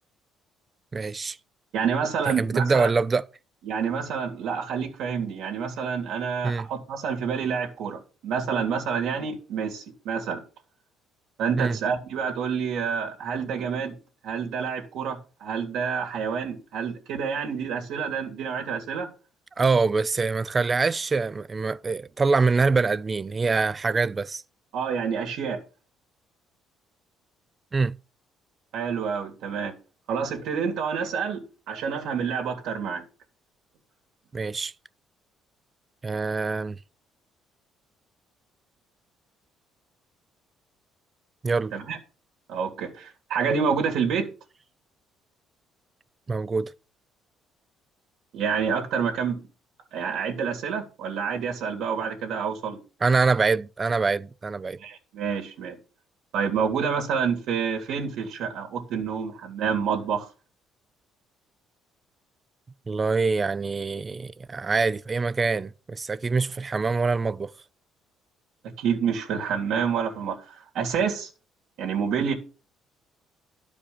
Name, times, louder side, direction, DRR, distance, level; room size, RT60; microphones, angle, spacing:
voice 1, 0.9-1.4 2.3-3.3 6.4-6.7 11.6-11.8 19.6-24.4 27.7-27.9 34.3-34.7 36.0-36.8 41.4-41.7 46.3-46.7 53.0-54.8 62.9-67.5, right 4 dB, 20° right, 0.4 m, -24 dB
voice 2, 1.7-2.9 3.6-10.4 11.4-13.9 14.2-19.1 24.7-25.6 28.7-29.7 30.1-31.4 31.7-33.0 41.7-42.0 42.5-44.3 48.3-49.4 49.9-52.8 54.8-55.8 56.3-60.3 68.8-71.3 71.8-72.3, right 6 dB, 75° right, 2.2 m, -28 dB
12.0 x 5.0 x 6.8 m
cardioid pair, 140°, 0 cm